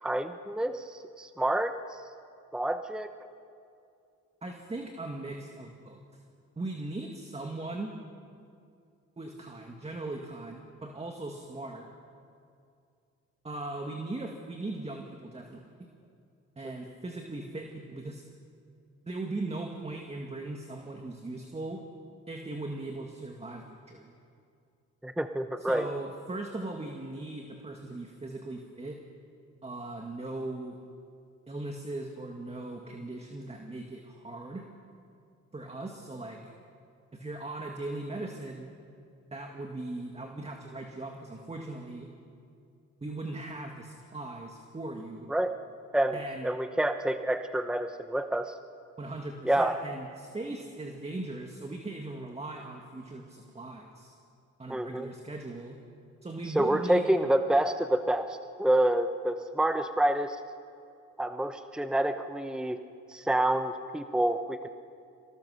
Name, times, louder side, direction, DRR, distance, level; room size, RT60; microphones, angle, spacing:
voice 1, 0.0-2.0 2.5-3.1 25.0-25.9 45.3-45.5 45.9-48.5 49.4-49.8 54.7-55.1 56.5-60.4 61.2-62.8 63.1-64.7, right 1 dB, 5° right, 8 dB, 0.9 m, -28 dB
voice 2, 4.4-6.0 6.6-7.9 9.2-11.9 13.4-15.9 16.6-18.2 19.0-21.8 22.3-24.1 25.6-29.0 29.6-30.8 31.5-34.7 35.5-36.4 37.1-38.7 39.3-42.1 43.0-45.3 46.1-46.5 49.0-54.2 54.6-55.8 56.2-57.1, right 2 dB, 20° right, 2 dB, 2.0 m, -39 dB
25.0 x 18.5 x 6.5 m, 2.4 s
cardioid pair, 90°, 30 cm